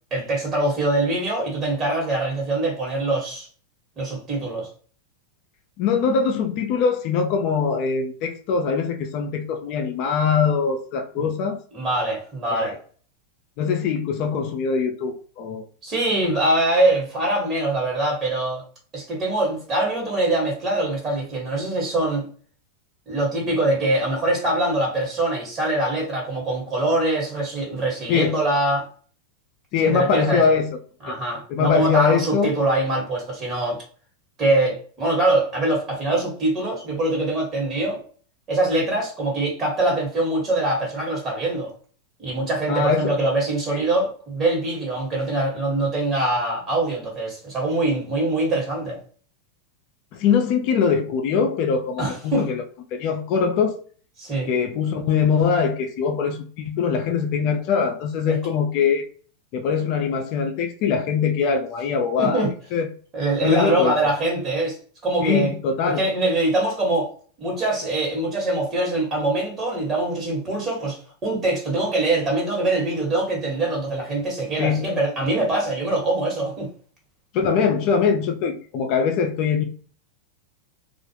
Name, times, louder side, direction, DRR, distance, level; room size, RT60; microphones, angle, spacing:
voice 1, 0.1-3.5 4.0-4.7 11.1-11.3 11.7-12.8 15.8-18.6 18.9-22.3 23.1-28.9 29.8-30.4 31.0-33.8 34.4-38.0 38.5-41.7 42.2-49.0 52.0-52.5 54.2-54.5 58.3-58.4 62.2-62.5 63.1-64.8 65.0-65.5 66.0-67.1 67.4-76.7, right 2 dB, 30° right, 1.3 m, -23 dB
voice 2, 5.8-11.6 12.5-12.8 13.6-15.7 28.1-28.4 29.7-30.7 31.1-31.2 31.5-32.5 42.7-43.1 43.7-43.8 50.1-52.6 52.9-53.8 54.4-59.1 59.5-62.9 63.4-63.9 65.2-66.0 74.6-74.8 77.3-79.6, left 6 dB, 50° left, 0.4 m, -22 dB
2.4 x 2.0 x 2.8 m
hypercardioid pair, 115°, 0 cm